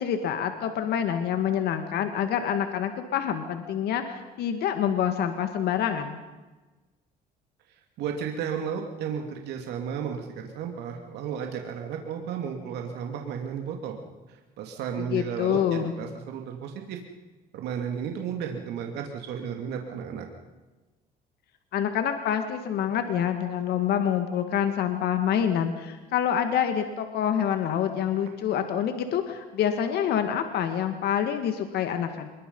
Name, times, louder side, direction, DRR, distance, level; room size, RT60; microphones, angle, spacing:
voice 1, 0.0-6.2 15.0-15.9 21.7-32.3, left 9 dB, 70° left, 7 dB, 2.0 m, -27 dB
voice 2, 8.0-14.0 14.6-17.0 17.5-20.3, right 7 dB, 80° right, 3 dB, 2.7 m, -33 dB
25.5 x 22.0 x 5.5 m, 1.2 s
cardioid pair, 110°, 17 cm